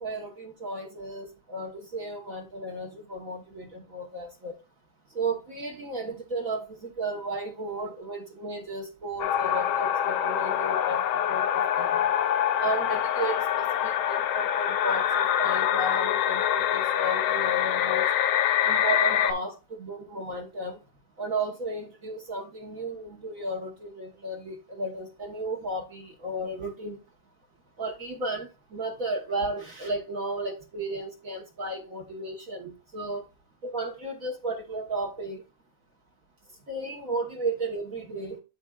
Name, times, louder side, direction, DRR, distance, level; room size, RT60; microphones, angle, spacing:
voice 1, 0.0-4.6 5.1-12.1 12.6-18.0 18.6-20.8 21.2-27.0 27.8-33.2 33.6-35.4 36.7-38.4, right 2 dB, 50° right, 1.3 m, -34 dB
sound 1, 9.2-19.3, left 10 dB, 80° left, 1.5 m, -25 dB
12.0 x 4.3 x 2.3 m
omnidirectional pair, 2.3 m